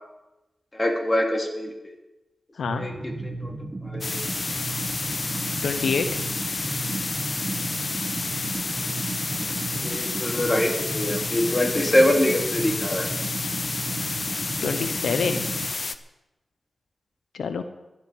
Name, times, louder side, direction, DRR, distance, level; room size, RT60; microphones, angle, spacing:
voice 1, 0.7-1.9 2.7-3.5 3.9-4.1 9.4-13.1, left 1 dB, 25° left, 2 dB, 3.0 m, -24 dB
voice 2, 2.6-2.9 5.6-6.2 14.6-15.4 17.3-17.6, left 5 dB, 90° left, 9 dB, 0.8 m, -26 dB
sound 1, 2.7-15.7, right 2 dB, 40° right, 1.4 m, -34 dB
sound 2, 4.0-16.0, left 3 dB, 50° left, 0.8 m, -30 dB
12.0 x 8.7 x 9.3 m, 1.0 s
cardioid pair, 55°, 0 cm